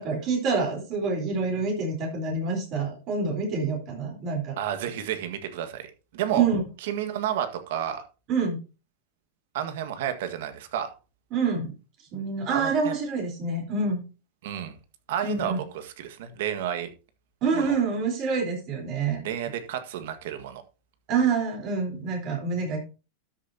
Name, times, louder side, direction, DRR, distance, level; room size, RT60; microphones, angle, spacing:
voice 1, 0.0-4.6 6.4-6.6 8.3-8.6 11.3-11.7 12.1-14.0 15.2-15.6 17.4-19.3 21.1-22.8, right 4 dB, 40° right, 1 dB, 4.1 m, -27 dB
voice 2, 4.6-5.9 6.1-6.5 6.8-8.0 9.5-10.9 12.5-13.0 14.4-14.7 15.1-16.9 17.5-17.8 19.2-20.6, right 10 dB, 70° right, 9 dB, 1.7 m, -31 dB
12.5 x 7.3 x 2.9 m, 0.32 s
supercardioid pair, 150°, 0 cm